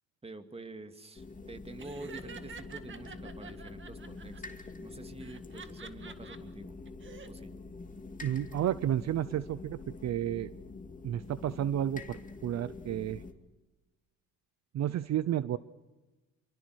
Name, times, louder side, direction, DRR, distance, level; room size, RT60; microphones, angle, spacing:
voice 1, 0.2-6.7 7.3-7.5, right 2 dB, 20° right, 8 dB, 2.3 m, -47 dB
sound 1, 1.2-13.3, left 3 dB, 25° left, 2.5 m, -46 dB
Laughter, 1.8-4.4 5.2-6.4 6.9-7.3, right 5 dB, 40° right, 2.1 m, -48 dB
voice 2, 8.2-10.5 11.0-13.2 14.7-15.6, right 11 dB, 60° right, 16 dB, 0.8 m, -31 dB
27.0 x 23.5 x 6.4 m, 1.1 s
cardioid pair, 90°, 30 cm